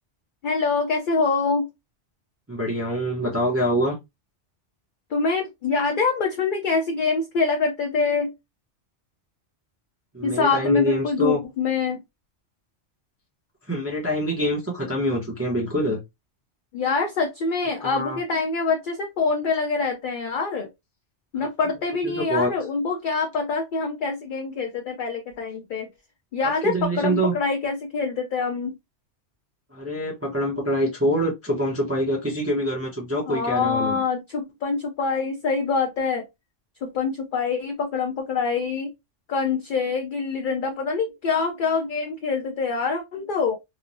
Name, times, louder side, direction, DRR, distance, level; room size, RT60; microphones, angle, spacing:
voice 1, 0.4-1.7 5.1-8.3 10.2-12.0 16.7-20.7 21.3-25.9 26.3-28.7 33.3-36.2 36.8-38.9 39.3-43.6, left 4 dB, 60° left, 0.6 m, -25 dB
voice 2, 2.5-4.0 10.1-11.4 13.7-16.0 17.8-18.2 21.3-21.5 22.0-22.5 26.4-27.3 29.7-34.0, equal, 15° right, 0.5 m, -25 dB
3.0 x 2.0 x 2.5 m
omnidirectional pair, 1.2 m